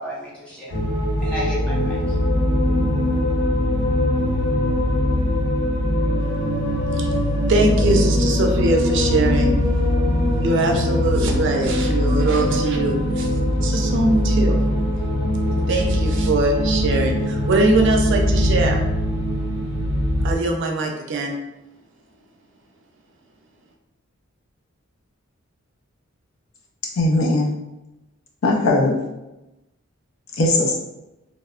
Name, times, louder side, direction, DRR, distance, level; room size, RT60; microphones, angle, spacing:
voice 1, 0.0-2.3, equal, 5° left, -8 dB, 0.9 m, -33 dB
sound 1, 0.7-20.4, left 1 dB, 55° left, 0.9 m, -21 dB
voice 2, 6.8-9.5 10.4-13.3 13.6-14.6 15.7-18.8 20.2-21.4, right 2 dB, 60° right, 2 dB, 0.4 m, -22 dB
voice 3, 27.0-27.5 28.4-29.0 30.3-30.7, left 2 dB, 70° left, -1 dB, 0.5 m, -18 dB
2.9 x 2.0 x 2.3 m, 0.98 s
head